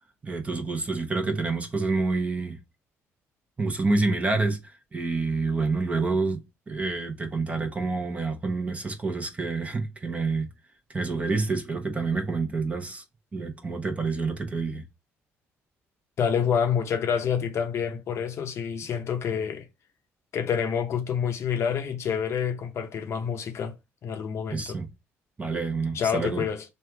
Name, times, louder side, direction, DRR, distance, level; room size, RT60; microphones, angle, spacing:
voice 1, 0.2-2.6 3.6-4.6 4.9-6.4 6.7-10.5 10.9-13.0 13.3-14.8 24.5-24.9 25.4-26.4, right 3 dB, 25° right, 0.9 m, -28 dB
voice 2, 16.2-19.7 20.3-23.7 24.0-24.8 25.9-26.6, left 7 dB, 55° left, 0.7 m, -27 dB
3.3 x 2.4 x 4.4 m
cardioid pair, 95°, 6 cm